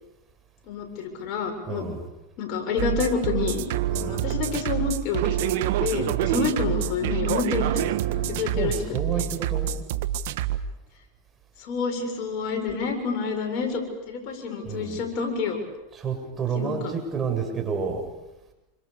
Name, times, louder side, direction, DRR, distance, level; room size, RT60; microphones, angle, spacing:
voice 1, 0.6-1.9 2.4-3.6 4.0-5.5 5.8-9.2 11.6-13.8 14.1-15.6 16.5-16.9, left 5 dB, 50° left, 3 dB, 7.5 m, -28 dB
voice 2, 1.7-2.1 3.9-4.3 6.7-6.8 8.4-9.7 14.6-15.0 15.9-18.0, right 5 dB, 25° right, 3 dB, 7.3 m, -30 dB
sound 1, 2.8-10.6, right 11 dB, 70° right, 1.5 m, -26 dB
28.5 x 26.0 x 7.1 m, 0.97 s
hypercardioid pair, 105°, 0 cm